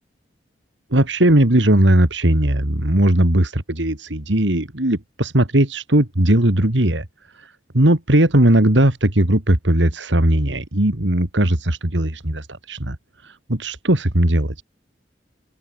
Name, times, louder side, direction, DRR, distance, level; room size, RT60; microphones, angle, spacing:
voice 1, 0.9-7.0 7.7-13.0 13.5-14.6, right 1 dB, 85° right, 2.8 m, -18 dB
open air
head